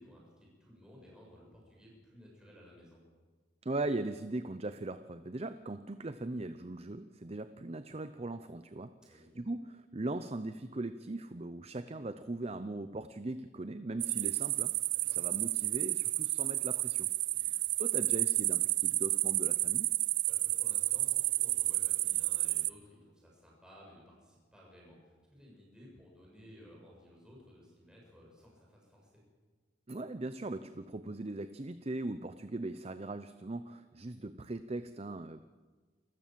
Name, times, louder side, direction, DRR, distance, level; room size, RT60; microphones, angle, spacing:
voice 1, 0.0-3.0 9.0-9.3 15.0-15.2 17.3-17.5 20.0-29.2, equal, 5° right, -3 dB, 7.3 m, -57 dB
voice 2, 3.6-14.7 15.0-17.1 17.4-19.9 29.9-35.4, right 2 dB, 35° right, 11 dB, 0.6 m, -39 dB
sound 1, 14.0-22.7, right 18 dB, 80° right, 0.7 m, -31 dB
28.5 x 14.5 x 7.6 m, 1.4 s
head